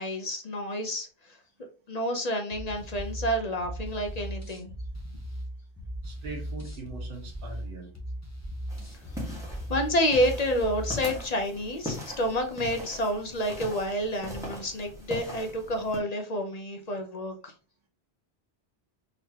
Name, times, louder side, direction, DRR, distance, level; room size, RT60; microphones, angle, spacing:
voice 1, 0.0-1.4 1.9-4.8 9.2-17.5, equal, 45° left, 4 dB, 0.7 m, -29 dB
sound 1, 2.5-11.2, equal, 15° left, 0.9 m, -38 dB
voice 2, 6.0-7.9, right 3 dB, 55° right, 0 dB, 1.3 m, -41 dB
sound 2, 8.7-16.0, left 1 dB, 5° right, 1.3 m, -41 dB
4.0 x 3.2 x 2.8 m, 0.35 s
omnidirectional pair, 1.1 m